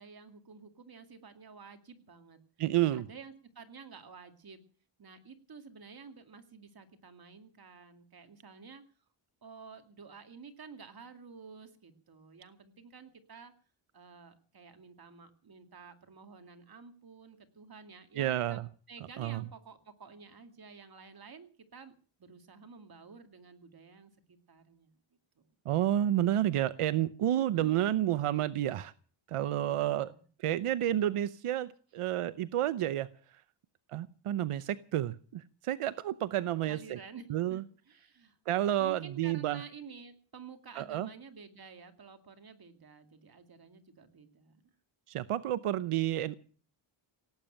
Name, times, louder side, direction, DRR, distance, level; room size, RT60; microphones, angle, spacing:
voice 1, 0.0-2.4 2.9-4.6 5.0-8.9 9.4-13.5 13.9-18.6 18.9-21.9 22.2-24.9 25.4-25.5 27.3-28.0 29.5-30.2 36.7-38.4 38.8-44.7, right 5 dB, 45° right, 7 dB, 2.4 m, -51 dB
voice 2, 2.6-3.1 18.2-18.6 19.2-19.4 25.7-28.9 29.3-30.1 30.4-33.1 33.9-37.0 37.3-37.6 38.5-39.6 40.8-41.1 45.1-46.4, right 12 dB, 90° right, 15 dB, 0.8 m, -30 dB
17.5 x 9.0 x 8.8 m, 0.42 s
wide cardioid pair, 130°, 50 cm